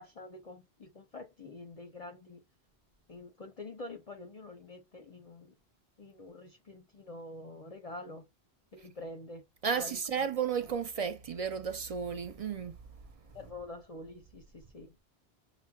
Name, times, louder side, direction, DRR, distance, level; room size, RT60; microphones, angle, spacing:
voice 1, 0.0-2.4 3.1-5.5 6.0-8.2 8.7-9.4 9.7-10.3 13.3-14.9, left 2 dB, 45° left, 0.6 m, -46 dB
voice 2, 9.6-12.8, right 6 dB, 50° right, 0.4 m, -33 dB
5.8 x 2.1 x 2.3 m
omnidirectional pair, 1.0 m